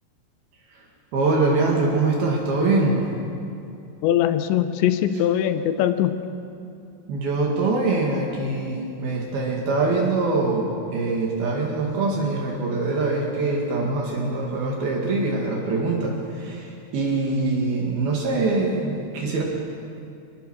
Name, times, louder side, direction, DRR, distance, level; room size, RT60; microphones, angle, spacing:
voice 1, 1.1-3.0 7.1-19.4, right 3 dB, 65° right, -1 dB, 3.9 m, -23 dB
voice 2, 4.0-6.1, left 11 dB, 85° left, 10 dB, 3.2 m, -21 dB
24.5 x 19.5 x 6.3 m, 2.6 s
omnidirectional pair, 5.0 m